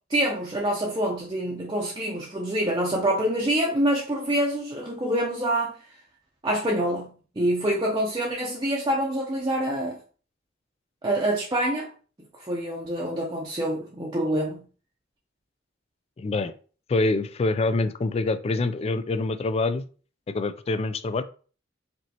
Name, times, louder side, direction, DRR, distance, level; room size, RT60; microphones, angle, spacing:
voice 1, 0.1-5.7 6.4-10.0 11.0-11.9 12.4-14.7, right 1 dB, 20° right, 0.6 m, -26 dB
voice 2, 16.2-16.5 16.9-19.8 20.3-21.2, left 3 dB, 30° left, 0.3 m, -25 dB
5.2 x 2.9 x 2.9 m
head